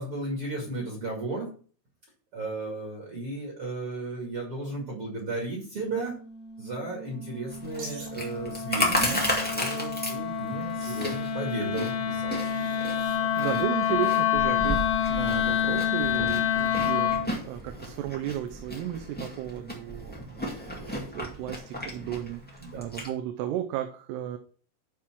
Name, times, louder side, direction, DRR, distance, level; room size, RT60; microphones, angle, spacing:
voice 1, 0.0-1.5 2.3-6.1 6.6-12.7 22.6-22.8, right 2 dB, 40° right, -1 dB, 2.3 m, -34 dB
Wind instrument woodwind instrument, 5.8-17.3, left 8 dB, 75° left, 2.9 m, -28 dB
Chewing mastication, 7.5-23.1, equal, 10° left, 0.5 m, -34 dB
Wild animals, 7.8-8.1 9.1-10.0 10.8-11.3 12.4-13.2, right 2 dB, 70° right, 5.2 m, -45 dB
voice 2, 13.4-24.4, right 12 dB, 90° right, 5 dB, 2.8 m, -34 dB
11.0 x 3.7 x 6.0 m, 0.42 s
omnidirectional pair, 4.6 m